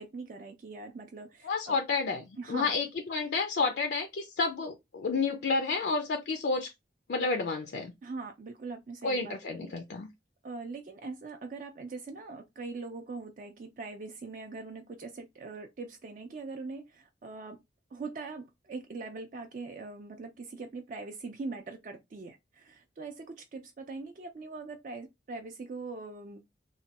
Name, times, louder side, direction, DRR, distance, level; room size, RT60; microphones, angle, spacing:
voice 1, 0.0-1.8 2.4-2.7 8.0-9.7 10.4-17.6 17.9-26.4, right 3 dB, 45° right, 0.4 m, -42 dB
voice 2, 1.4-6.7 7.1-7.9 9.0-10.1, left 4 dB, 65° left, 0.4 m, -30 dB
3.1 x 2.2 x 2.8 m
head